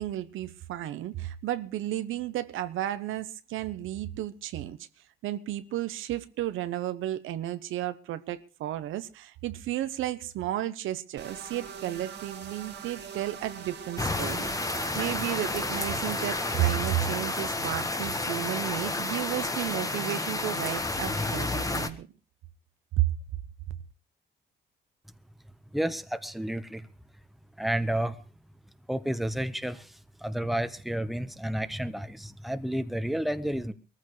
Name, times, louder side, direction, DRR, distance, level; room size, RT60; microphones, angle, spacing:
voice 1, 0.0-4.8 5.2-22.1 23.0-23.1, right 13 dB, 85° right, 0.9 m, -33 dB
sound 1, 11.2-16.7, right 6 dB, 60° right, 2.0 m, -42 dB
sound 2, 14.0-21.9, left 2 dB, 15° left, 1.4 m, -31 dB
voice 2, 25.7-26.9 27.6-28.2 28.9-33.7, right 1 dB, ahead, 1.1 m, -31 dB
22.0 x 14.5 x 3.2 m
cardioid pair, 90°, 20 cm